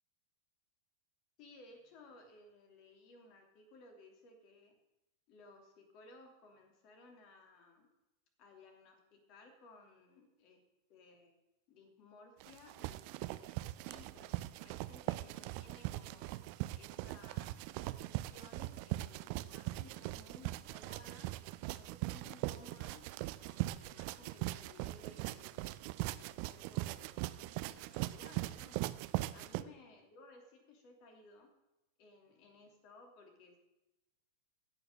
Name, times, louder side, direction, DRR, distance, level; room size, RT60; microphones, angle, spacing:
voice 1, 1.4-4.7 5.3-7.9 8.4-10.6 10.9-11.3 11.7-16.4 16.7-21.3 21.6-23.1 23.4-25.7 26.2-28.8 29.3-31.5 32.0-33.6, left 3 dB, 40° left, 4 dB, 2.8 m, -59 dB
sound 1, 12.4-29.6, right 18 dB, 45° right, 0.5 m, -40 dB
16.0 x 5.9 x 6.7 m, 0.96 s
figure-of-eight pair, 90°, 0 cm